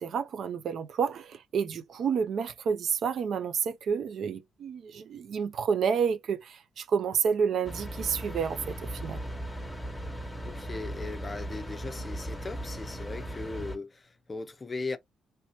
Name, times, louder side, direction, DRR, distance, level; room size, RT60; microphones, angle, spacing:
voice 1, 0.0-8.8 9.0-9.2, right 6 dB, 65° right, 0.4 m, -29 dB
sound 1, 7.6-13.8, right 1 dB, 5° left, 1.0 m, -37 dB
voice 2, 10.5-15.0, left 3 dB, 25° left, 0.5 m, -38 dB
3.3 x 2.8 x 2.8 m
cardioid pair, 90°, 0 cm